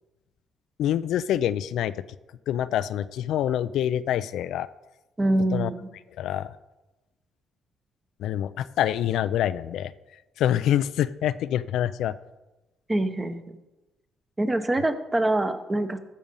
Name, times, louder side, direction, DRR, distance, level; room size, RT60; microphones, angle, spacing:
voice 1, 0.8-2.0 2.5-4.7 5.5-5.7 6.2-6.5 8.2-9.9 10.4-12.1, left 11 dB, 80° left, 14 dB, 0.3 m, -26 dB
voice 2, 5.2-5.9 12.9-13.6 14.4-16.0, right 1 dB, 20° right, 9 dB, 0.9 m, -25 dB
14.0 x 5.1 x 5.5 m, 1.0 s
cardioid pair, 90°, 0 cm